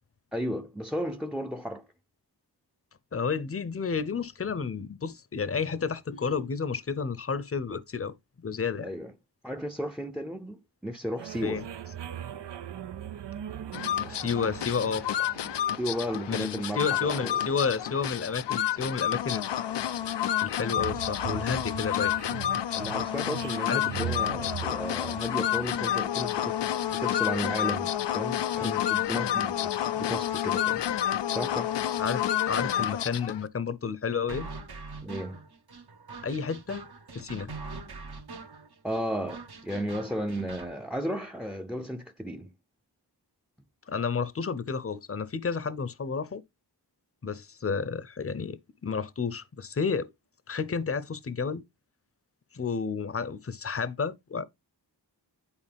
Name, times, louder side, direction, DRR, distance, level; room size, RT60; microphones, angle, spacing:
voice 1, 0.3-1.9 8.8-9.1 9.4-11.6 15.7-17.5 22.7-26.6 26.9-30.9 31.3-31.8 35.0-35.4 38.8-42.5, equal, ahead, 0.6 m, -34 dB
voice 2, 3.1-8.9 11.4-11.6 14.0-15.3 16.3-19.5 20.4-22.1 23.7-23.8 28.6-28.8 32.0-34.5 36.2-36.8 37.1-37.5 43.9-46.4 47.2-50.1 50.5-51.6 52.5-54.4, left 5 dB, 35° left, 0.7 m, -31 dB
sound 1, 11.2-26.6, right 10 dB, 85° right, 0.6 m, -41 dB
sound 2, 13.7-33.4, left 11 dB, 85° left, 0.5 m, -29 dB
sound 3, 34.3-40.7, right 3 dB, 65° right, 1.2 m, -43 dB
9.9 x 4.2 x 3.5 m
wide cardioid pair, 70°, 41 cm